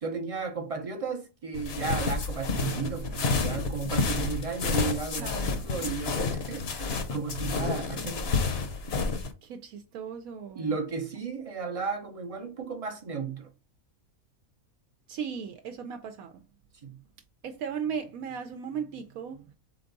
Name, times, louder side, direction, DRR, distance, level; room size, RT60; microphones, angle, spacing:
voice 1, 0.0-8.4 10.5-13.5 16.8-17.0, right 5 dB, 40° right, 0.5 m, -34 dB
sound 1, 1.5-9.3, left 4 dB, 55° left, 0.9 m, -30 dB
voice 2, 5.2-5.6 9.4-10.8 15.1-16.4 17.4-19.5, right 7 dB, 80° right, 1.0 m, -37 dB
3.8 x 3.5 x 3.9 m
omnidirectional pair, 1.5 m